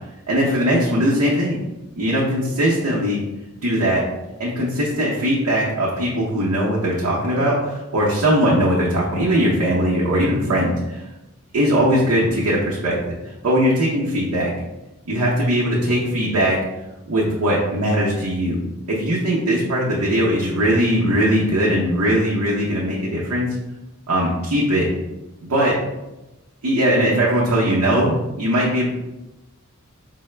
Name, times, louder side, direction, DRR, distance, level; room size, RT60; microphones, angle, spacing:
voice 1, 0.3-1.6 2.0-3.2 3.6-4.0 4.4-11.0 11.5-12.9 13.4-14.5 15.1-16.6 17.1-18.6 18.9-23.5 24.1-24.9 25.4-25.7 26.6-28.9, equal, 80° right, -5 dB, 0.7 m, -20 dB
4.6 x 2.1 x 3.2 m, 1.0 s
head